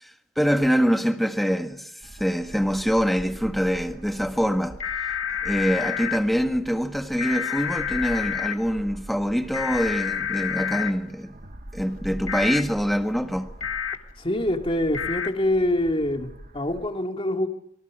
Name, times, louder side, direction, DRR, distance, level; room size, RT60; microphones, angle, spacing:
voice 1, 0.0-1.9 2.2-4.8 5.4-11.4 11.7-13.6, equal, ahead, 1.6 m, -24 dB
sound 1, 2.0-16.9, right 1 dB, 45° right, 1.5 m, -43 dB
sound 2, 4.8-6.2 7.2-8.5 9.5-10.9 12.3-12.6 13.6-14.0 14.9-15.3, left 8 dB, 70° left, 2.1 m, -28 dB
voice 2, 14.2-17.5, left 1 dB, 25° left, 2.5 m, -25 dB
27.5 x 24.0 x 6.3 m
head